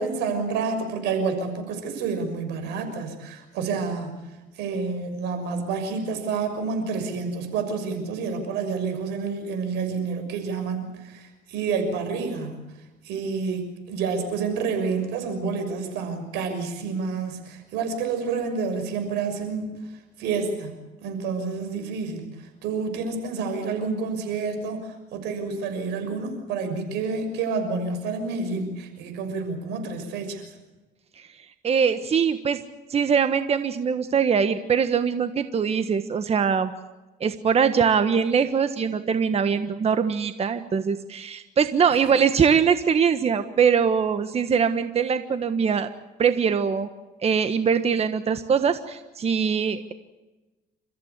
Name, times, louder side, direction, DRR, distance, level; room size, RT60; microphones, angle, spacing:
voice 1, 0.0-4.2 4.6-12.6 13.0-19.8 20.2-20.7 21.0-22.3 22.6-30.5, right 4 dB, 90° right, 7 dB, 6.4 m, -29 dB
voice 2, 31.6-32.6 32.9-36.7 37.2-45.9 46.2-46.9 47.2-49.9, right 6 dB, 40° right, 10 dB, 1.4 m, -22 dB
29.5 x 15.0 x 8.3 m, 1.1 s
cardioid pair, 110°, 17 cm